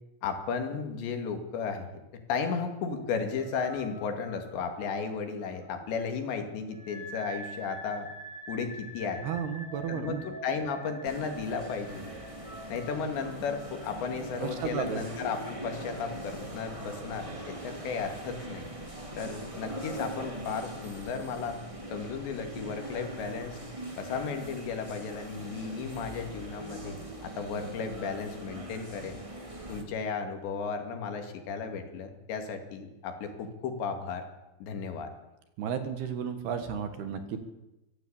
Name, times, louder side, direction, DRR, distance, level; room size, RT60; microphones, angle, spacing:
voice 1, 0.2-2.0 2.3-8.1 8.5-9.3 9.9-12.1 12.7-18.7 19.2-21.6 21.9-23.6 24.0-27.0 27.2-29.2 29.7-34.2 34.6-35.1, left 5 dB, 70° left, 6 dB, 4.4 m, -34 dB
sound 1, 2.8-17.5, right 1 dB, 20° left, 4.3 m, -47 dB
voice 2, 9.2-10.2 14.4-15.0 35.6-37.5, right 7 dB, 65° right, 9 dB, 3.4 m, -33 dB
sound 2, 11.0-29.8, right 1 dB, 10° right, 1.4 m, -42 dB
24.5 x 15.5 x 8.8 m, 0.98 s
omnidirectional pair, 5.4 m